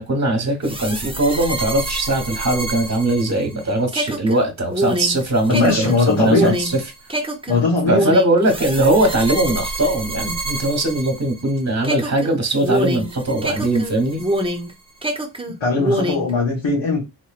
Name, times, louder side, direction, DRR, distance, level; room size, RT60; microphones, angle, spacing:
voice 1, 0.0-6.8 7.9-14.2, right 1 dB, 35° right, 1.3 m, -20 dB
sound 1, 0.6-11.5 11.8-14.7 15.0-16.3, right 1 dB, 10° right, 0.7 m, -26 dB
voice 2, 5.5-6.6 7.5-8.1 10.3-10.4 15.6-17.0, left 3 dB, 70° left, 1.3 m, -19 dB
4.0 x 3.1 x 2.4 m
wide cardioid pair, 100°, 47 cm